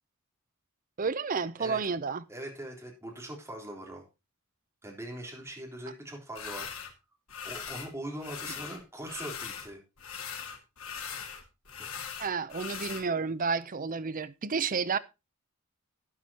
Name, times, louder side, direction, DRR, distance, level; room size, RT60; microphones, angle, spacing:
voice 1, 1.0-2.2 12.2-15.0, right 5 dB, 40° right, 0.6 m, -31 dB
voice 2, 2.3-4.0 4.8-6.7 7.4-9.8, right 1 dB, 10° right, 3.8 m, -41 dB
sound 1, 6.3-6.9 7.3-7.9 8.2-9.7 10.0-13.0, left 7 dB, 75° left, 2.4 m, -40 dB
12.0 x 11.0 x 2.9 m
head